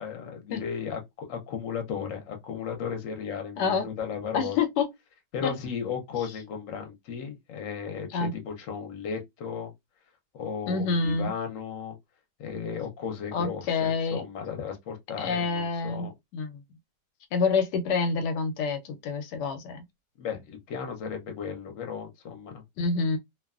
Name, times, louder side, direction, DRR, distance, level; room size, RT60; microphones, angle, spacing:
voice 1, 0.0-4.6 5.3-9.7 10.3-11.9 12.4-16.1 20.2-22.6, left 7 dB, 60° left, 1.0 m, -35 dB
voice 2, 3.6-3.9 4.3-4.9 5.4-5.5 8.1-8.3 10.7-11.3 13.3-14.2 15.2-16.6 17.3-19.8 22.8-23.2, left 4 dB, 90° left, 1.2 m, -27 dB
2.8 x 2.2 x 2.3 m
omnidirectional pair, 1.8 m